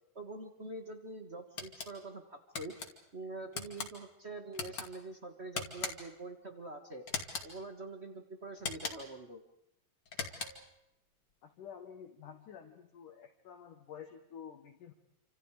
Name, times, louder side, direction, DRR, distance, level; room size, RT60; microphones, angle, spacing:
voice 1, 0.1-2.7 3.1-7.0 7.4-9.4, right 2 dB, 30° right, 6 dB, 1.1 m, -45 dB
sound 1, 1.6-1.9 2.5-2.9 3.5-3.9 4.5-4.9 5.5-6.2 7.1-7.5 8.6-9.2 10.1-10.7, left 5 dB, 40° left, 3.0 m, -40 dB
voice 2, 11.4-14.9, left 8 dB, 65° left, 2 dB, 2.9 m, -50 dB
28.0 x 27.0 x 5.0 m, 0.81 s
omnidirectional pair, 4.2 m